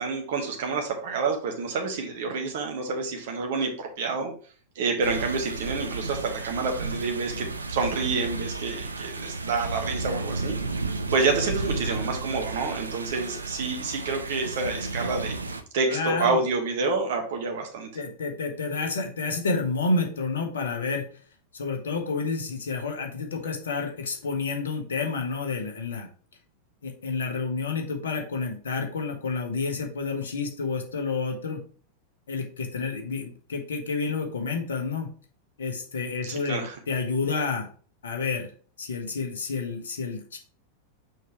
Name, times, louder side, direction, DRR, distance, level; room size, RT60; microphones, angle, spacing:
voice 1, 0.0-4.3 4.7-10.5 11.1-15.4 15.7-17.9 36.2-36.8, right 4 dB, 55° right, 2 dB, 1.4 m, -28 dB
sound 1, 5.0-15.6, right 3 dB, 80° right, 0.6 m, -33 dB
voice 2, 15.9-16.4 17.9-21.0 21.5-26.1 26.8-31.6 32.3-35.1 35.6-37.7 38.0-38.5 38.8-40.4, left 4 dB, 65° left, 2 dB, 1.4 m, -29 dB
6.3 x 4.9 x 3.1 m, 0.42 s
figure-of-eight pair, 90°, 0 cm